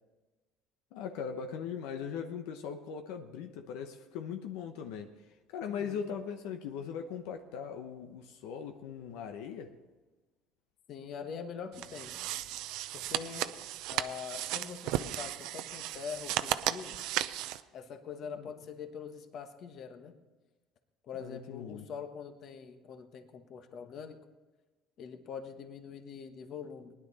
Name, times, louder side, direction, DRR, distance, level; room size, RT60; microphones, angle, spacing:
voice 1, 0.9-5.1 5.5-9.7 18.3-18.5 21.1-21.9, left 7 dB, 85° left, 5 dB, 0.9 m, -40 dB
voice 2, 5.7-6.1 10.9-12.3 12.9-13.5 13.9-17.0 17.7-20.1 21.0-24.2 25.0-26.9, left 6 dB, 50° left, 7 dB, 1.3 m, -44 dB
sound 1, 11.7-17.6, right 13 dB, 75° right, 0.6 m, -35 dB
19.5 x 11.0 x 4.1 m, 1.2 s
cardioid pair, 130°, 0 cm